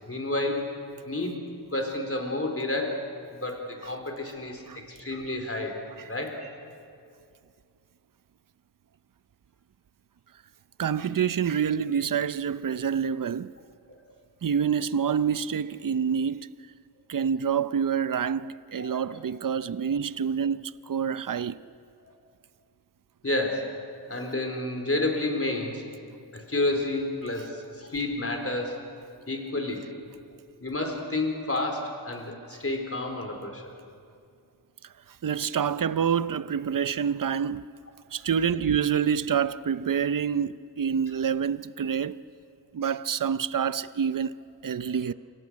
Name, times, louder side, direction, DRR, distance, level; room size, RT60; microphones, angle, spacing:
voice 1, 0.1-0.6 1.1-1.4 1.7-3.0 3.3-5.7 6.1-6.5 18.8-19.0 22.0-22.1 23.2-23.7 24.1-25.8 26.3-28.8 29.3-29.9 30.6-33.7 44.8-44.9, left 2 dB, 35° left, 4.2 m, -30 dB
voice 2, 10.8-13.5 14.4-16.5 17.1-21.6 35.2-37.6 38.1-42.2 42.7-45.1, right 7 dB, 55° right, 0.6 m, -27 dB
28.5 x 25.0 x 6.4 m
wide cardioid pair, 80°, 39 cm